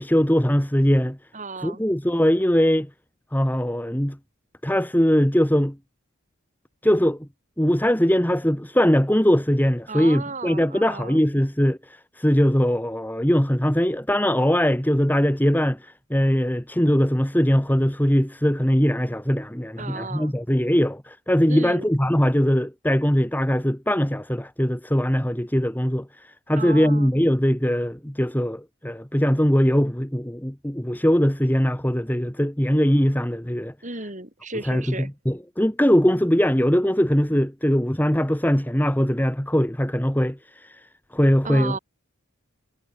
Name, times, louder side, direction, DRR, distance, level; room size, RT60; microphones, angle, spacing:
voice 1, 0.0-1.2 1.6-2.9 3.3-4.2 4.6-5.8 6.8-7.3 7.6-33.7 34.7-40.8 41.1-41.8, equal, 10° left, 2.0 m, -21 dB
voice 2, 1.3-1.8 9.9-11.2 19.8-20.3 21.5-21.9 26.6-27.1 33.8-35.1 41.4-41.8, right 3 dB, 35° right, 5.6 m, -34 dB
head